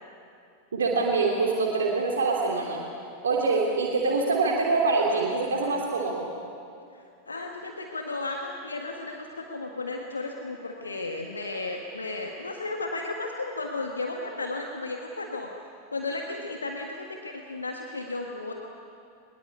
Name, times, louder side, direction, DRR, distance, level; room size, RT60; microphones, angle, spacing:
voice 1, 0.7-2.8 3.2-6.3, right 3 dB, 65° right, -1 dB, 3.1 m, -25 dB
voice 2, 6.9-15.5 15.9-18.5, left 2 dB, 75° left, 2 dB, 1.7 m, -34 dB
23.0 x 21.5 x 8.4 m, 2.5 s
figure-of-eight pair, 90°, 0 cm